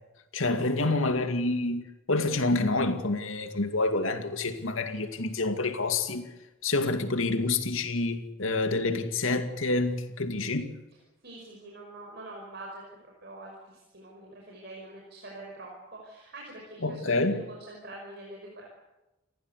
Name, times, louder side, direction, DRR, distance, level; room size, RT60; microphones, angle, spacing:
voice 1, 0.3-1.8 2.1-6.3 6.6-10.7 16.8-17.4, left 2 dB, 80° left, 2.4 m, -27 dB
voice 2, 11.2-17.2 17.5-18.7, right 2 dB, 55° right, 5.7 m, -45 dB
28.5 x 15.5 x 8.3 m
head